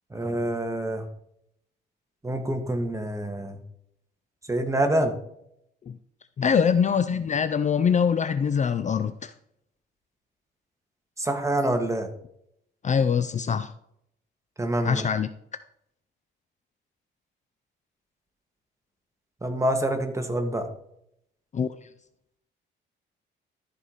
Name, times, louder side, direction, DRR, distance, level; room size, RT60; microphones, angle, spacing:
voice 1, 0.1-1.1 2.2-3.6 4.5-5.1 11.2-12.1 14.6-15.1 19.4-20.7, right 1 dB, 15° right, 6 dB, 1.5 m, -26 dB
voice 2, 6.4-9.3 12.8-13.7 14.8-15.3 21.5-21.7, left 7 dB, 35° left, 12 dB, 0.5 m, -23 dB
13.5 x 4.8 x 4.0 m, 0.75 s
cardioid pair, 90°, 20 cm